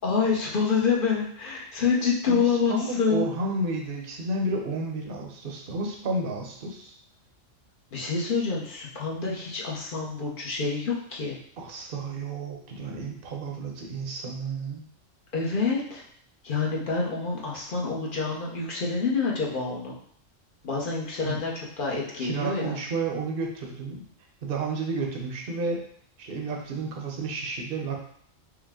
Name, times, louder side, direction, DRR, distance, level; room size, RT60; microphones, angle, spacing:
voice 1, 0.0-3.3 7.9-11.4 15.3-16.0 16.4-20.0 20.6-22.8, left 5 dB, 45° left, -3 dB, 0.9 m, -27 dB
voice 2, 2.7-6.9 11.6-14.8 21.2-21.4 22.2-24.0 24.4-25.8 26.2-28.0, right 3 dB, 50° right, 0 dB, 0.8 m, -31 dB
4.8 x 2.1 x 3.6 m, 0.63 s
omnidirectional pair, 1.3 m